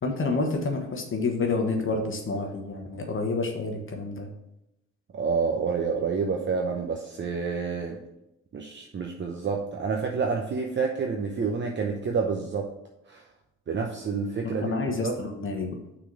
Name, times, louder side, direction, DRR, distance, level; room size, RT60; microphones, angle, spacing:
voice 1, 0.0-4.3 14.4-15.8, left 3 dB, 45° left, 3 dB, 1.2 m, -29 dB
voice 2, 5.1-8.0 8.5-12.7 13.1-13.3 13.7-14.8 15.0-15.2, right 5 dB, 40° right, 2 dB, 0.8 m, -28 dB
5.9 x 4.1 x 6.2 m, 0.88 s
cardioid pair, 90°, 30 cm